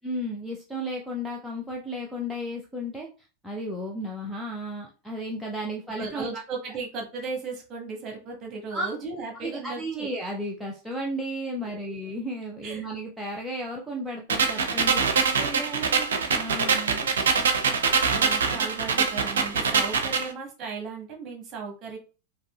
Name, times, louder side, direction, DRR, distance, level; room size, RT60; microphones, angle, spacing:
voice 1, 0.0-6.3 8.7-8.9 9.3-15.1 16.3-17.1, equal, 5° right, -2 dB, 0.6 m, -33 dB
voice 2, 6.0-10.1 11.7-11.9 12.6-12.9 15.1-22.0, right 4 dB, 30° right, 0 dB, 1.5 m, -37 dB
sound 1, 14.3-20.3, right 5 dB, 65° right, 0.5 m, -24 dB
4.7 x 2.8 x 2.3 m, 0.34 s
figure-of-eight pair, 90°, 0 cm